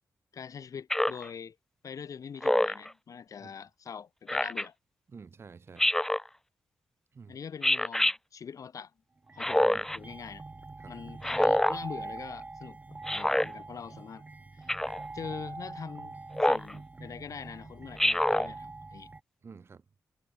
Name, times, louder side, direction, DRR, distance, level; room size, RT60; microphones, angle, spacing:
voice 1, 0.3-1.6 1.8-4.7 7.3-8.9 9.3-10.4 10.9-14.2 14.5-14.7 15.1-16.2 16.4-19.1, left 7 dB, 60° left, 5.1 m, -43 dB
Speech synthesizer, 0.9-1.3 2.4-2.9 4.3-4.7 5.8-6.3 7.6-8.2 9.4-10.0 11.2-11.8 13.1-13.5 14.7-15.0 16.4-16.7 18.0-18.5, left 1 dB, 5° left, 0.4 m, -26 dB
voice 2, 5.1-5.9 7.1-7.3 9.4-9.9 10.8-10.9 19.4-19.8, right 5 dB, 40° right, 1.4 m, -50 dB
sound 1, 9.3-19.2, right 3 dB, 25° right, 1.8 m, -44 dB
wide cardioid pair, 125°, 6 cm